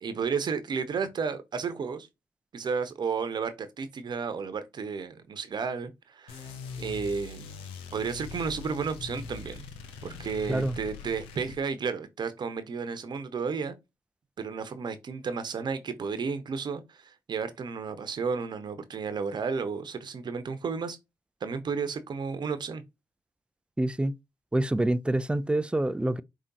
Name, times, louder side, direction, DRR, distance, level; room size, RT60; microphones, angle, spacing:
voice 1, 0.0-2.1 2.5-6.5 6.8-7.6 7.9-9.7 10.0-13.7 14.4-21.0 21.4-22.8, right 5 dB, 55° right, 1.0 m, -32 dB
sound 1, 6.3-11.6, left 5 dB, 85° left, 0.8 m, -42 dB
voice 2, 23.8-24.2 24.5-26.2, right 1 dB, 10° right, 0.5 m, -26 dB
5.2 x 3.1 x 2.9 m
hypercardioid pair, 45°, 9 cm